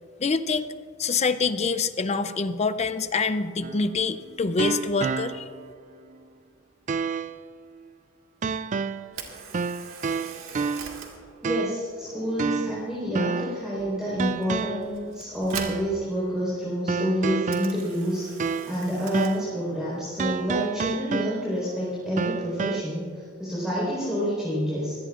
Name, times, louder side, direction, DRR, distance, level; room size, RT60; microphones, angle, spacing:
voice 1, 0.2-0.7 1.0-5.4, left 4 dB, 35° left, 11 dB, 0.5 m, -25 dB
sound 1, 3.6-5.7 6.1-6.2 6.9-7.4 8.4-9.2 9.5-11.1 11.4-11.9 12.4-13.7 14.2-15.0 15.5-16.0 16.9-18.9 19.1-19.5 20.2-21.7 22.2-22.8, right 5 dB, 40° right, 0.4 m, -30 dB
Camera, 9.0-23.1, right 5 dB, 85° right, 2.0 m, -45 dB
voice 2, 11.4-18.3 18.7-25.0, equal, 5° right, -8 dB, 4.5 m, -28 dB
23.5 x 17.5 x 2.5 m, 2.2 s
head